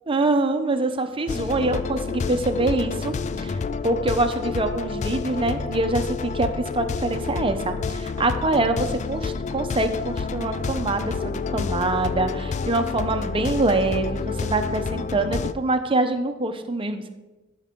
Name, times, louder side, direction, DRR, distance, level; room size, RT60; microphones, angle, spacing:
voice 1, 0.1-17.1, right 2 dB, 25° right, 7 dB, 0.8 m, -25 dB
sound 1, 1.3-15.5, left 5 dB, 35° left, 0.3 m, -29 dB
14.5 x 5.6 x 3.7 m, 1.1 s
head